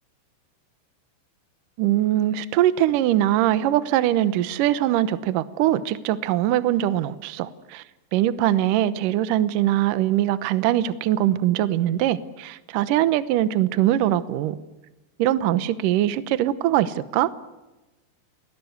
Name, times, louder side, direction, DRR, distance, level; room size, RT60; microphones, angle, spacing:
voice 1, 1.8-7.8 8.1-14.6 15.2-17.3, right 13 dB, 75° right, 13 dB, 2.0 m, -22 dB
29.5 x 20.5 x 8.0 m, 1.1 s
omnidirectional pair, 5.1 m